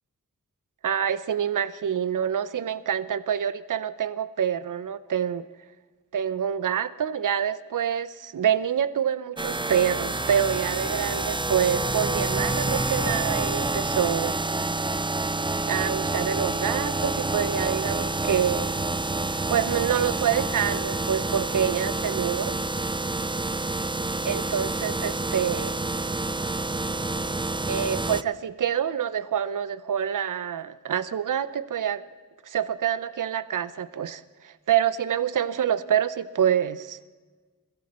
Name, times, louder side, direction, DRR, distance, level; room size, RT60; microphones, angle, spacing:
voice 1, 0.8-5.5 6.1-14.4 15.7-18.8 19.5-22.6 24.2-25.8 27.7-32.0 32.5-37.0, right 9 dB, 70° right, 16 dB, 0.7 m, -26 dB
sound 1, 9.4-28.2, right 2 dB, 15° right, 0.6 m, -28 dB
22.0 x 14.5 x 4.3 m, 1.4 s
cardioid pair, 45°, 33 cm